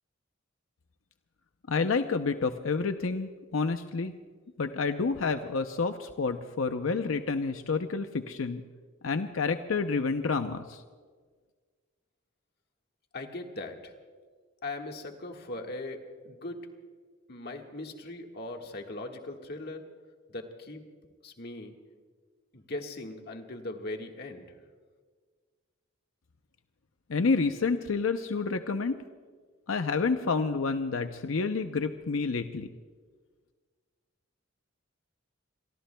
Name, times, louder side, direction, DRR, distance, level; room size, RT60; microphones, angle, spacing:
voice 1, 1.7-4.1 4.6-8.6 9.0-10.8 27.1-29.0 29.7-32.7, left 4 dB, 90° left, 8 dB, 0.6 m, -29 dB
voice 2, 13.1-13.9 14.6-16.6 17.3-19.8 20.3-20.8 21.2-21.7 22.5-24.6, left 2 dB, 50° left, 3 dB, 1.6 m, -39 dB
27.0 x 23.0 x 2.3 m, 1.6 s
head